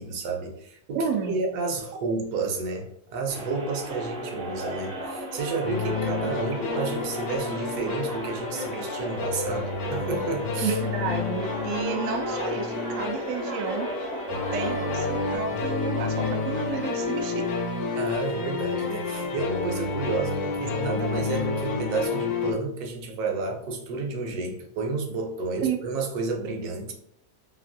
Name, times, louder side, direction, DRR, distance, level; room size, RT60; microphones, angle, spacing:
voice 1, 0.0-10.8 17.9-26.9, right 3 dB, 70° right, 1 dB, 1.1 m, -31 dB
voice 2, 0.9-1.4 10.6-13.9 14.5-17.5 25.6-25.8, right 5 dB, 85° right, 3 dB, 0.7 m, -31 dB
sound 1, 3.3-15.4, right 1 dB, 50° right, 0.7 m, -35 dB
sound 2, 5.6-22.5, left 4 dB, 80° left, 1.3 m, -30 dB
3.1 x 2.5 x 2.5 m, 0.69 s
omnidirectional pair, 1.9 m